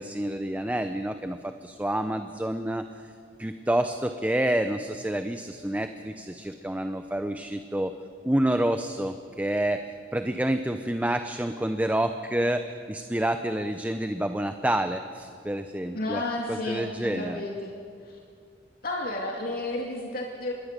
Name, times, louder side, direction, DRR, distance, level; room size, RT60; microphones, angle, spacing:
voice 1, 0.0-2.9 3.4-7.9 8.2-16.2 16.5-17.4, right 1 dB, 10° right, 8 dB, 0.7 m, -28 dB
voice 2, 15.9-17.7 18.0-18.2 18.8-20.5, left 2 dB, 55° left, -1 dB, 2.5 m, -32 dB
26.0 x 21.0 x 6.7 m, 2.3 s
head